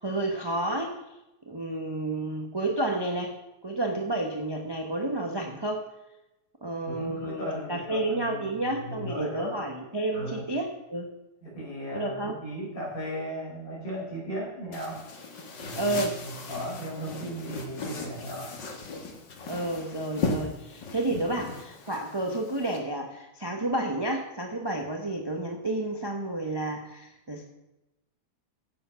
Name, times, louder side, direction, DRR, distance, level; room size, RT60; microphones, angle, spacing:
voice 1, 0.0-0.9 1.5-3.3 3.6-5.8 6.6-11.1 11.9-12.3 15.8-16.2 19.4-27.4, right 2 dB, 15° right, 2 dB, 0.9 m, -30 dB
voice 2, 6.8-9.6 10.1-10.4 11.4-15.0 15.6-18.5, equal, 50° left, -4 dB, 5.1 m, -36 dB
sound 1, 14.7-22.8, left 3 dB, 85° left, 2.4 m, -37 dB
12.0 x 8.4 x 5.7 m, 0.96 s
omnidirectional pair, 1.9 m